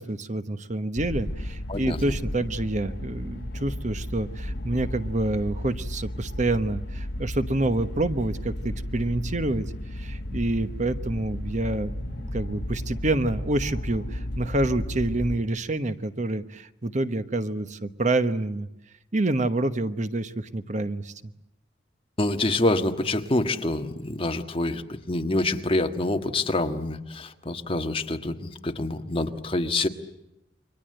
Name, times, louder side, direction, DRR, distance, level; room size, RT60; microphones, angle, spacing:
voice 1, 0.0-9.7 9.9-18.7 19.1-21.3, right 2 dB, 40° right, 11 dB, 1.1 m, -27 dB
sound 1, 0.9-15.4, left 1 dB, 60° left, 1.5 m, -34 dB
voice 2, 22.2-29.9, left 2 dB, 30° left, 6 dB, 1.6 m, -26 dB
29.5 x 24.5 x 7.8 m, 0.90 s
head